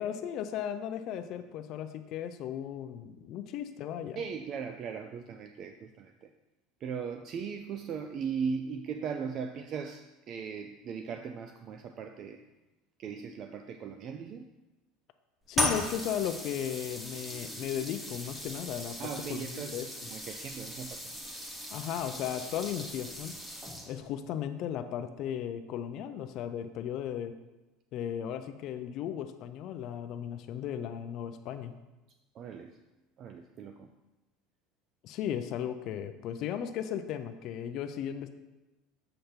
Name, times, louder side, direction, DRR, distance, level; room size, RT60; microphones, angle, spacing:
voice 1, 0.0-4.2 15.5-19.0 19.3-19.9 21.7-23.3 23.9-27.4 27.9-31.7 35.0-38.3, left 9 dB, 45° left, 9 dB, 0.4 m, -36 dB
voice 2, 4.2-6.3 6.8-12.4 13.0-14.5 19.0-21.1 32.3-32.8 33.2-33.9, right 6 dB, 35° right, 6 dB, 0.3 m, -38 dB
sound 1, 15.5-24.1, left 1 dB, 10° right, 0.8 m, -38 dB
7.8 x 5.1 x 4.4 m, 1.1 s
cardioid pair, 165°, 0 cm